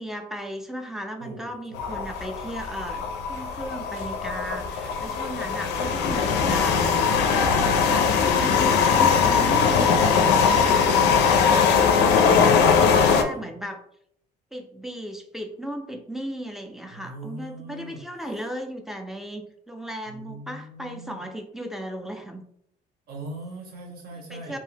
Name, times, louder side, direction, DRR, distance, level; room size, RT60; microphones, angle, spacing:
voice 1, 0.0-7.0 7.6-11.7 12.2-13.8 14.5-22.4 24.1-24.6, right 1 dB, ahead, 4 dB, 0.4 m, -36 dB
voice 2, 1.2-2.0 12.3-13.5 16.9-18.0 20.1-21.2 23.1-24.6, right 2 dB, 60° right, 0 dB, 1.0 m, -39 dB
sound 1, 1.7-13.2, left 6 dB, 85° left, 0.4 m, -21 dB
2.6 x 2.1 x 3.2 m, 0.69 s
cardioid pair, 110°, 17 cm